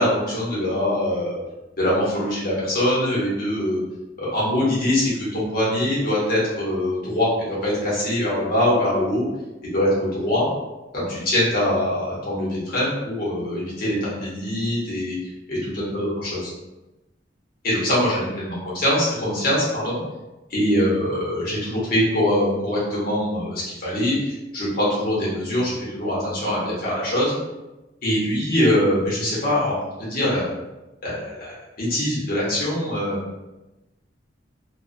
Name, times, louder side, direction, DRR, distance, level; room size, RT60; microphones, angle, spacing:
voice 1, 0.0-1.4 1.8-3.8 4.2-9.2 9.7-10.5 10.9-15.2 15.5-16.5 17.6-20.0 20.5-27.4 28.0-29.7 30.0-30.5 31.0-33.2, left 1 dB, 55° left, -7 dB, 1.0 m, -23 dB
2.3 x 2.3 x 2.5 m, 1.0 s
head